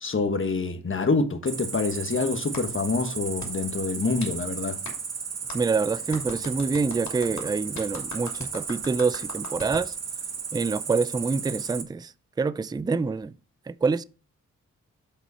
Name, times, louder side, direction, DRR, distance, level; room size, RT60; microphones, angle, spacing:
voice 1, 0.0-4.8, left 4 dB, 40° left, 1.3 m, -26 dB
Cricket, 1.5-11.8, right 6 dB, 55° right, 1.2 m, -35 dB
Clapping, 2.5-2.6 3.4-3.5 4.2-4.3 4.8-5.0 5.5-5.6 6.1-9.9, left 3 dB, 65° left, 2.7 m, -39 dB
voice 2, 5.5-9.9 10.5-12.1 12.4-13.3 13.7-14.0, right 4 dB, 15° right, 0.4 m, -26 dB
7.4 x 4.1 x 5.4 m
cardioid pair, 45°, 31 cm